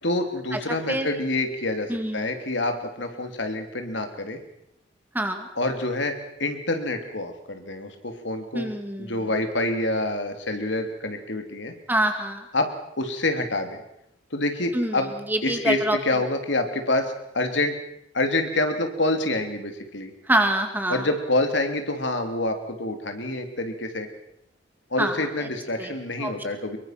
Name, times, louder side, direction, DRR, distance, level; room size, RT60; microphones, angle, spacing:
voice 1, 0.0-4.4 5.6-8.7 9.0-11.7 12.5-12.7 13.0-13.8 14.3-15.1 15.4-17.7 18.1-20.1 20.9-24.1 24.9-26.8, left 2 dB, 65° left, 6 dB, 3.0 m, -27 dB
voice 2, 1.9-2.3 5.1-5.5 8.5-9.1 11.9-12.4 14.7-15.0 15.3-16.0 20.3-21.1 25.0-25.1 25.4-25.5 25.8-25.9 26.2-26.3, right 1 dB, 10° right, 5 dB, 2.4 m, -25 dB
24.5 x 23.0 x 6.0 m, 0.76 s
head